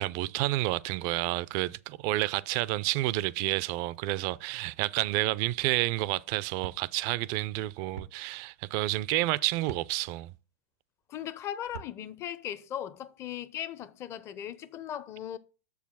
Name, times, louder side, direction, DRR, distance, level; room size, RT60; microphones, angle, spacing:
voice 1, 0.0-10.3, right 18 dB, 50° right, 0.4 m, -30 dB
sound 1, 6.6-6.8 8.0-8.1 9.6-9.9 11.6-11.9, right 7 dB, 85° right, 0.7 m, -42 dB
voice 2, 11.1-15.4, left 10 dB, 35° left, 0.7 m, -38 dB
6.7 x 4.8 x 6.0 m
hypercardioid pair, 105°, 8 cm